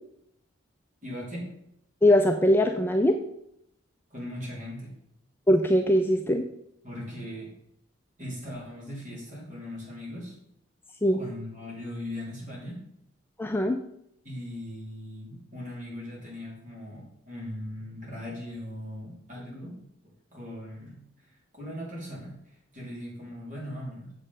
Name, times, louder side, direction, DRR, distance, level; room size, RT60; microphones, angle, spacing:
voice 1, 1.0-1.5 4.1-4.9 6.8-7.5 8.2-10.3 11.1-12.8 14.2-19.8 20.3-24.1, left 1 dB, 40° right, -5 dB, 3.4 m, -39 dB
voice 2, 2.0-3.2 5.5-6.5 11.0-11.2 13.4-13.8, left 1 dB, 10° left, 4 dB, 0.4 m, -21 dB
7.4 x 5.2 x 5.5 m, 0.75 s
head